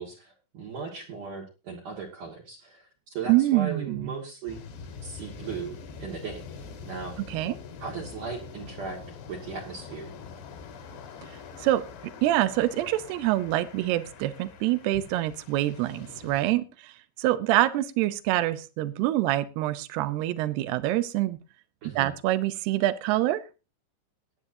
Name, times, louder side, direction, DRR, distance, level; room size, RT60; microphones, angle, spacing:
voice 1, 0.0-4.6 5.0-6.4 6.8-7.2 7.8-9.0 9.3-10.1 21.8-22.1, right 5 dB, 55° right, -2 dB, 2.8 m, -37 dB
voice 2, 3.3-4.1 7.3-7.6 11.6-11.8 12.2-16.9 17.2-21.4 22.0-23.4, right 15 dB, 85° right, 14 dB, 2.3 m, -25 dB
sound 1, 4.5-16.4, left 5 dB, 70° left, 4.0 m, -44 dB
21.5 x 9.8 x 2.7 m, 0.30 s
omnidirectional pair, 5.6 m